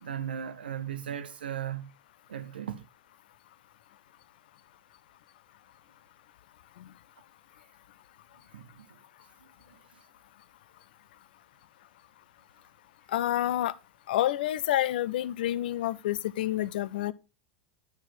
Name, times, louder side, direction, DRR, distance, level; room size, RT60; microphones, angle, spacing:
voice 1, 0.0-1.9 2.3-2.9 8.5-9.0 9.4-9.5, right 9 dB, 80° right, 0.7 m, -37 dB
voice 2, 13.1-13.7 14.1-17.1, left 13 dB, 70° left, 0.5 m, -28 dB
9.5 x 4.4 x 4.2 m
hypercardioid pair, 90°, 5 cm